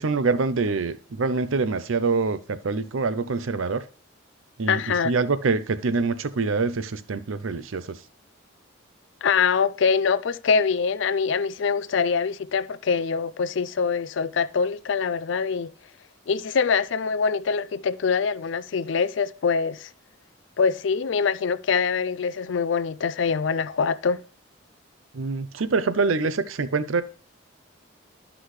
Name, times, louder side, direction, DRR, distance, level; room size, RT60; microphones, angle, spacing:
voice 1, 0.0-3.8 4.6-8.0 25.1-27.0, right 4 dB, 85° right, 0.6 m, -25 dB
voice 2, 4.7-5.1 9.2-15.7 16.3-19.9 20.6-24.2, left 5 dB, 65° left, 0.4 m, -24 dB
11.5 x 6.1 x 3.2 m
head